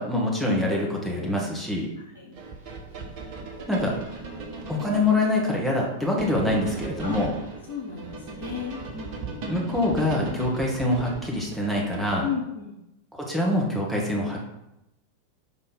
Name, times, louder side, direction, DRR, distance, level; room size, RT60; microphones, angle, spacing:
voice 1, 0.0-1.9 3.7-3.9 4.7-7.3 9.5-12.3 13.2-14.4, left 1 dB, ahead, -3 dB, 1.7 m, -25 dB
sound 1, 2.4-12.3, right 3 dB, 40° right, 1.4 m, -38 dB
voice 2, 7.7-9.5 10.4-10.5 12.2-12.7, left 7 dB, 60° left, -3 dB, 1.3 m, -34 dB
5.1 x 4.1 x 5.5 m, 0.87 s
figure-of-eight pair, 90°, 0 cm